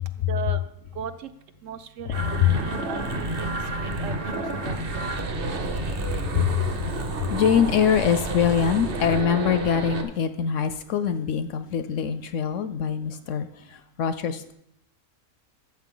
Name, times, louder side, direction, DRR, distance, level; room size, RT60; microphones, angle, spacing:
voice 1, 0.3-0.6 1.0-1.3 1.6-5.1, right 8 dB, 65° right, 10 dB, 0.9 m, -37 dB
sound 1, 2.1-10.0, right 2 dB, 45° right, 1.1 m, -29 dB
voice 2, 7.3-14.5, left 8 dB, 65° left, 12 dB, 0.8 m, -24 dB
13.0 x 7.5 x 3.8 m, 0.78 s
omnidirectional pair, 1.6 m